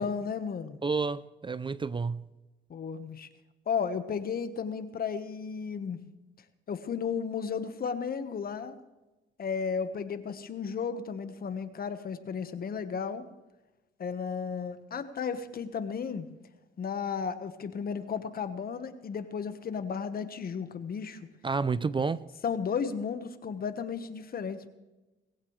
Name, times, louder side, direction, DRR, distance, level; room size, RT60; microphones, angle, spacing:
voice 1, 0.0-0.8 2.7-3.3 3.7-6.0 6.7-8.7 9.4-13.2 14.0-16.3 16.8-21.2 22.4-24.7, left 6 dB, 50° left, 1.4 m, -34 dB
voice 2, 0.8-2.3 21.4-22.2, right 4 dB, 25° right, 0.5 m, -30 dB
20.0 x 16.0 x 3.3 m
cardioid pair, 90°, 20 cm